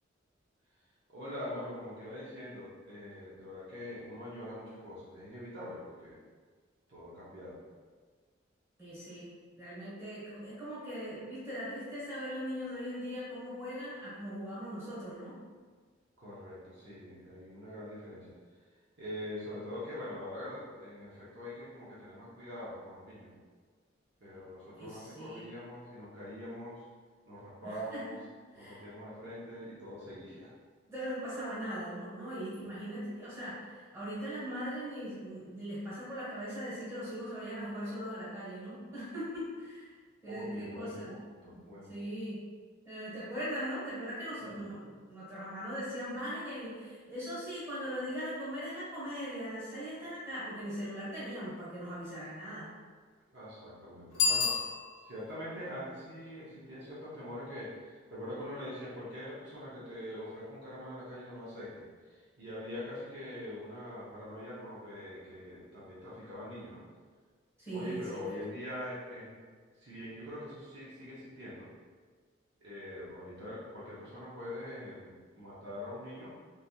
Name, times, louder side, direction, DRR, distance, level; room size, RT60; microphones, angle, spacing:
voice 1, 1.1-6.2 6.9-7.6 16.2-18.3 19.0-23.3 24.2-26.8 27.3-28.2 28.6-30.5 40.3-41.9 44.4-44.7 53.3-54.6 55.1-66.8 67.7-69.4 69.8-71.7 72.6-76.3, left 1 dB, 60° right, -9 dB, 0.7 m, -43 dB
voice 2, 8.8-15.4 24.8-25.5 27.6-28.2 28.5-28.8 30.9-39.9 40.2-41.1 41.5-41.6 41.9-42.4 42.8-52.7 67.6-68.4, equal, 15° right, -10 dB, 1.2 m, -40 dB
Bicycle bell, 54.1-55.3, left 3 dB, 60° left, 0.7 m, -30 dB
3.2 x 2.6 x 2.2 m, 1.5 s
head